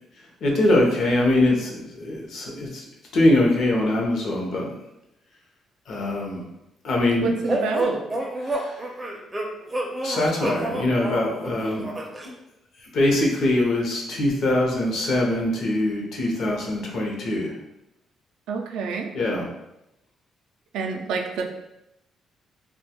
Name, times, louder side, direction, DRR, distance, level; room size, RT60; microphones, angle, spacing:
voice 1, 0.4-2.8 3.1-4.7 5.9-6.4 6.8-7.3 8.4-8.8 10.0-12.0 12.9-17.5 19.1-19.5, left 1 dB, 70° left, -1 dB, 0.6 m, -22 dB
voice 2, 7.2-8.0 18.5-19.1 20.7-21.5, right 5 dB, 90° right, 3 dB, 0.3 m, -28 dB
sound 1, 7.5-12.3, right 1 dB, 20° right, 0.4 m, -29 dB
2.2 x 2.1 x 2.8 m, 0.87 s
cardioid pair, 90°, 0 cm